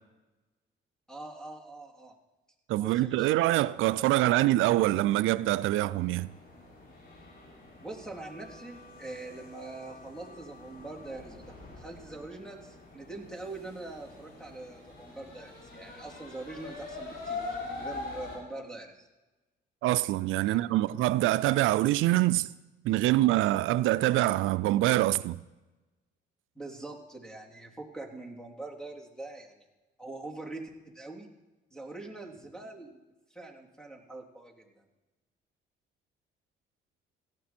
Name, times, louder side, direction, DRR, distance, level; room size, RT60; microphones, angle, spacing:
voice 1, 1.1-2.1 2.8-3.3 7.8-19.1 20.4-20.8 26.5-29.6 30.0-31.3 31.7-33.0 33.3-34.8, right 2 dB, 5° left, 3.2 m, -43 dB
voice 2, 2.7-6.3 19.8-22.5 22.8-25.4, right 16 dB, 85° right, 0.4 m, -25 dB
sound 1, 5.7-18.4, left 3 dB, 50° left, 6.9 m, -44 dB
17.5 x 14.5 x 4.4 m
cardioid pair, 90°, 20 cm